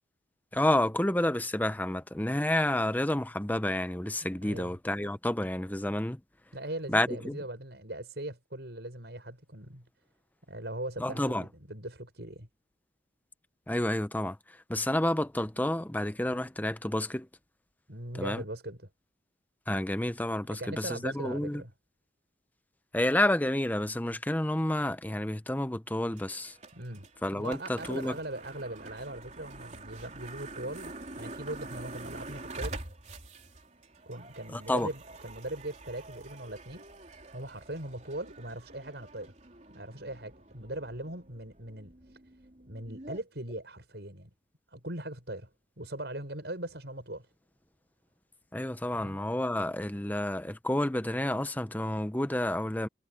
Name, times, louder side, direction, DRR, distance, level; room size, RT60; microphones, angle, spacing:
voice 1, 0.5-6.2 6.9-7.4 11.0-11.4 13.7-14.4 14.7-17.3 18.2-18.4 19.7-21.6 22.9-26.5 27.2-28.1 34.5-34.9 48.5-52.9, left 1 dB, 10° left, 0.8 m, -30 dB
voice 2, 4.4-4.8 6.5-9.9 10.5-12.5 17.9-18.9 20.5-21.7 26.7-27.1 27.3-32.8 34.1-39.3 39.7-42.2 42.7-44.3 44.7-45.5 45.8-47.3 48.9-49.2, right 1 dB, 70° right, 7.1 m, -40 dB
sound 1, 26.1-43.2, right 2 dB, 40° right, 3.8 m, -46 dB
head